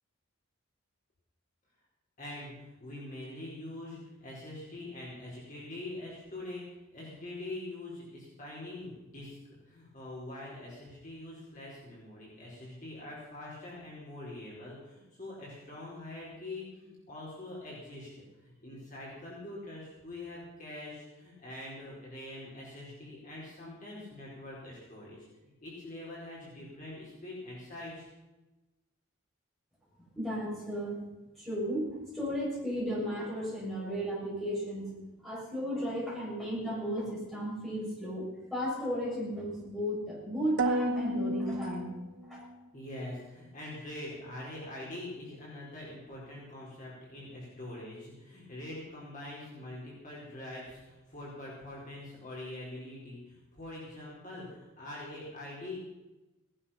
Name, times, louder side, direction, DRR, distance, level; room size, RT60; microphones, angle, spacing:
voice 1, 2.2-9.4 9.6-18.1 18.4-28.1 42.7-55.8, left 1 dB, 40° left, -5 dB, 4.6 m, -44 dB
voice 2, 30.2-31.0 31.4-34.9 35.2-41.9 42.3-42.4, equal, ahead, -7 dB, 7.1 m, -34 dB
sound 1, 40.6-42.6, right 1 dB, 60° right, 1.1 m, -31 dB
18.0 x 11.5 x 5.8 m, 1.1 s
head